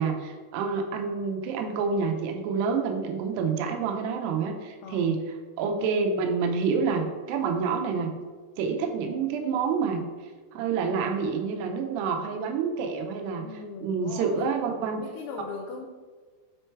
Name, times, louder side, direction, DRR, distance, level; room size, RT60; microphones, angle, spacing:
voice 1, 0.0-5.3 5.6-8.1 8.6-10.0 10.5-13.4 13.8-15.0, right 5 dB, 85° right, 3 dB, 2.8 m, -28 dB
voice 2, 4.8-5.2 13.4-14.5 15.0-15.9, left 5 dB, 85° left, 1 dB, 2.7 m, -39 dB
7.1 x 4.5 x 4.5 m, 1.5 s
omnidirectional pair, 4.8 m